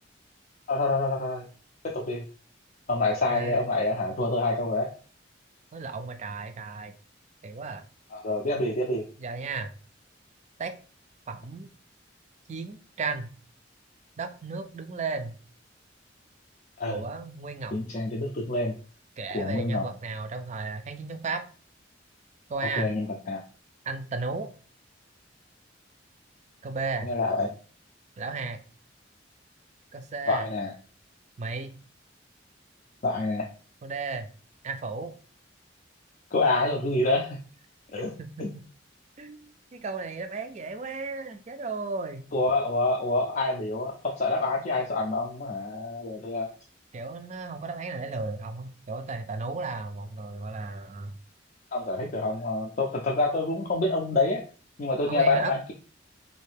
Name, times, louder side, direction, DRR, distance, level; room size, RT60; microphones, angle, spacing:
voice 1, 0.7-1.5 1.8-2.2 2.9-4.9 8.1-9.0 16.8-17.0 17.7-18.8 19.3-19.9 22.8-23.4 27.0-27.5 30.3-30.7 33.0-33.5 36.3-37.4 37.9-38.1 38.4-38.5 42.3-46.5 51.7-54.4 54.8-55.7, left 2 dB, 45° left, -2 dB, 0.5 m, -27 dB
voice 2, 3.3-3.7 5.7-6.9 7.4-7.8 9.2-9.7 10.6-10.7 11.3-11.7 12.5-13.3 14.2-15.4 16.9-17.8 19.2-21.4 22.5-22.9 23.9-24.5 26.6-27.1 28.2-28.6 29.9-30.4 31.4-31.8 33.8-34.3 34.6-35.1 38.2-38.6 39.2-42.3 46.9-51.2 55.1-55.5, right 4 dB, 35° right, 8 dB, 0.4 m, -34 dB
3.2 x 2.6 x 3.3 m, 0.39 s
head